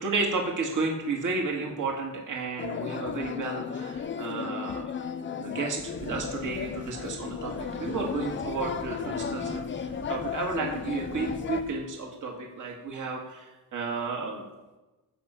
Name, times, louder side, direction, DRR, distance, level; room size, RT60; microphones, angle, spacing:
voice 1, 0.0-5.1 5.4-14.5, right 3 dB, 55° right, 0 dB, 2.1 m, -32 dB
sound 1, 2.6-11.6, left 7 dB, 35° left, 0.5 m, -34 dB
sound 2, 5.8-11.8, right 3 dB, 30° right, 2.2 m, -43 dB
15.5 x 5.7 x 7.5 m, 1.1 s
wide cardioid pair, 170°, 36 cm